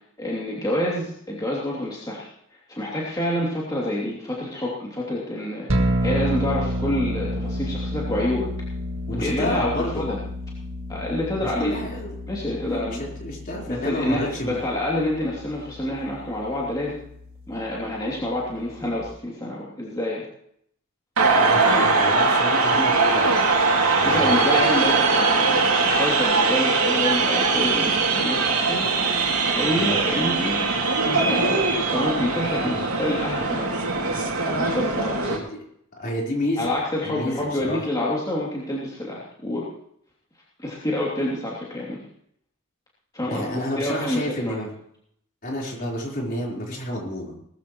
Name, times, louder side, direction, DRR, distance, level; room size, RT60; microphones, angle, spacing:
voice 1, 0.2-2.3 2.7-8.5 9.1-10.2 10.9-11.8 12.3-13.0 13.7-17.0 17.5-20.3 24.0-28.9 29.5-30.7 31.2-33.8 34.6-35.3 36.6-39.7 40.6-42.0 43.1-44.6, left 1 dB, 15° left, -5 dB, 2.8 m, -27 dB
sound 1, 5.7-19.1, equal, 65° right, 1.9 m, -31 dB
voice 2, 9.1-10.1 11.4-12.1 12.6-14.6 21.4-23.5 24.0-24.8 29.7-30.0 35.3-35.6 36.0-37.8 43.3-44.7 45.4-47.3, left 1 dB, 40° left, -3 dB, 4.3 m, -30 dB
sound 2, 21.2-35.4, right 3 dB, 85° right, 2.7 m, -21 dB
19.5 x 14.0 x 3.1 m, 0.69 s
head